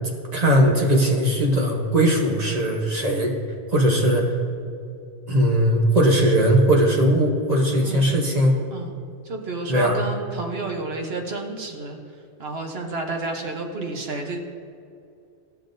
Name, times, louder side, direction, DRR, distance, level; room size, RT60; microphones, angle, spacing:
voice 1, 0.3-3.3 3.7-4.2 5.3-8.6 9.7-10.0, right 1 dB, 40° right, 0 dB, 1.0 m, -19 dB
voice 2, 9.3-12.0 12.4-14.4, right 3 dB, 65° right, 2 dB, 1.1 m, -30 dB
13.0 x 6.9 x 2.6 m, 2.5 s
omnidirectional pair, 1.1 m